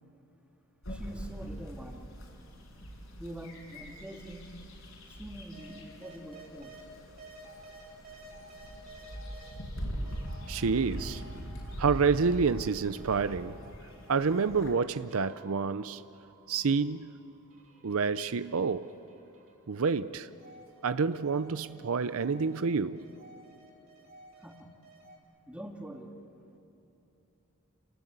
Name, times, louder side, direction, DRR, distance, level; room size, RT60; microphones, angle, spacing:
sound 1, 0.8-14.7, equal, 65° left, 5.6 m, -42 dB
voice 1, 0.9-2.1 3.2-4.5 5.2-6.8 24.4-24.7 25.5-26.2, right 1 dB, 5° right, 2 dB, 2.0 m, -44 dB
sound 2, 5.5-6.8 7.2-9.6 10.1-12.7 13.0-19.8 20.2-25.2, right 2 dB, 40° right, 4.7 m, -54 dB
voice 2, 10.5-11.2 11.8-13.6 14.1-16.0 16.5-17.1 17.8-18.9 19.7-20.3 20.8-23.1, right 5 dB, 75° right, 13 dB, 0.6 m, -28 dB
29.5 x 19.5 x 8.1 m, 2.9 s
head